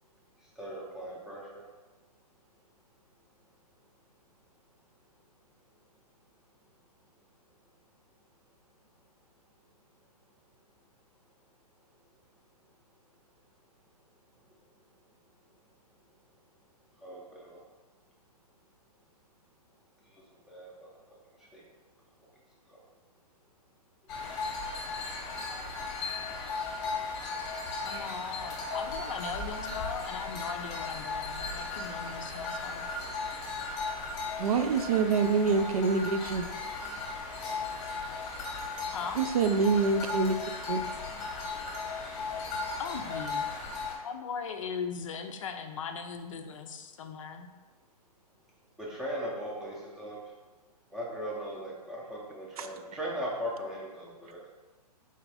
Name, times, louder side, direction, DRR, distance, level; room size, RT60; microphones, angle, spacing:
voice 1, 0.6-1.6 17.0-17.6 20.5-20.9 21.5-21.6 48.8-50.2 50.9-54.5, equal, ahead, -5 dB, 0.6 m, -38 dB
sound 1, 24.1-44.0, left 3 dB, 20° left, 0.9 m, -36 dB
voice 2, 27.8-32.9 36.4-37.5 38.9-39.2 40.8-41.8 42.8-43.4 44.0-47.5, left 6 dB, 55° left, 6 dB, 0.5 m, -39 dB
voice 3, 34.4-36.5 39.2-40.4 40.7-40.8 52.6-52.7, right 4 dB, 65° right, 8 dB, 0.4 m, -26 dB
4.1 x 2.5 x 4.7 m, 1.3 s
hypercardioid pair, 155°, 20 cm